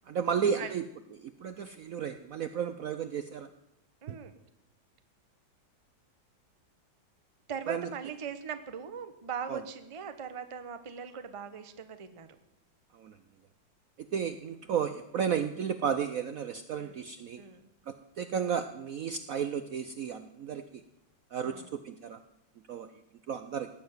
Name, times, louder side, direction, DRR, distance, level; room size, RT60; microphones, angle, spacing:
voice 1, 0.1-0.9 1.2-3.5 4.1-4.2 7.7-7.9 9.5-9.6 12.9-13.2 14.0-17.4 17.9-20.8 21.3-22.2 22.7-22.9 23.3-23.7, right 7 dB, 65° right, 10 dB, 0.9 m, -33 dB
voice 2, 4.0-4.4 7.5-12.4 16.8-17.0 17.4-17.7 21.4-21.7, right 7 dB, 25° right, 10 dB, 0.7 m, -40 dB
17.5 x 7.0 x 9.4 m, 0.87 s
omnidirectional pair, 2.0 m